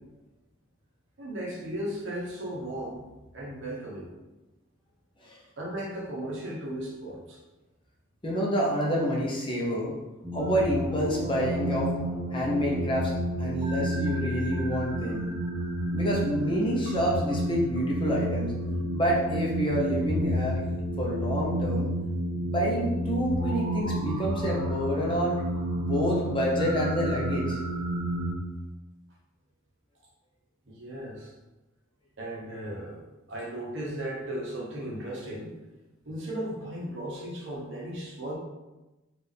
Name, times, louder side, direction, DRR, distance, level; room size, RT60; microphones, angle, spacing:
voice 1, 1.2-3.0 3.3-4.1 5.6-7.4 30.7-31.3 32.2-33.0 33.3-35.5 36.0-38.3, right 1 dB, 60° right, -4 dB, 1.1 m, -36 dB
voice 2, 8.2-9.9 10.3-11.9 12.3-13.1 13.4-15.3 15.9-18.5 18.9-20.6 21.0-21.9 22.3-25.3 25.8-27.6, equal, 25° left, -3 dB, 0.7 m, -28 dB
sound 1, 10.2-28.3, right 1 dB, 20° right, 0.6 m, -30 dB
4.4 x 2.5 x 3.4 m, 1.1 s
head